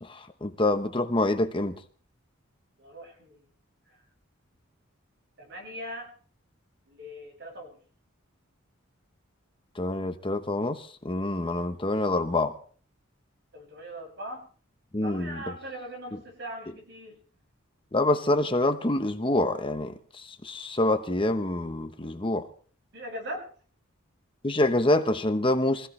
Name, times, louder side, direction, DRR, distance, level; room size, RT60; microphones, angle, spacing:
voice 1, 0.0-1.8 9.8-12.5 14.9-15.4 17.9-22.5 24.4-25.9, left 2 dB, 25° left, 1.0 m, -26 dB
voice 2, 2.8-3.4 5.4-6.1 6.9-7.8 13.5-14.4 15.0-17.2 22.9-23.5, equal, 60° right, 7.2 m, -40 dB
25.5 x 16.0 x 3.3 m
head